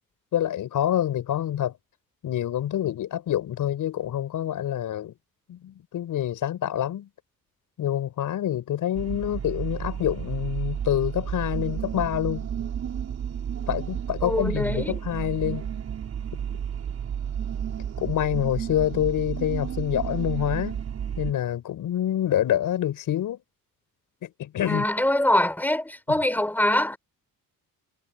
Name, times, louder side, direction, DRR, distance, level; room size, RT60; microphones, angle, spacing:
voice 1, 0.3-1.8 2.2-5.1 5.5-7.1 7.8-12.5 13.7-15.7 18.0-20.8 21.2-23.4 24.2-24.8, left 11 dB, 60° left, 6.3 m, -27 dB
sound 1, 8.9-21.3, right 8 dB, 45° right, 5.0 m, -32 dB
voice 2, 14.2-15.0 24.6-27.0, left 1 dB, 5° left, 5.1 m, -24 dB
cardioid pair, 180°, 35 cm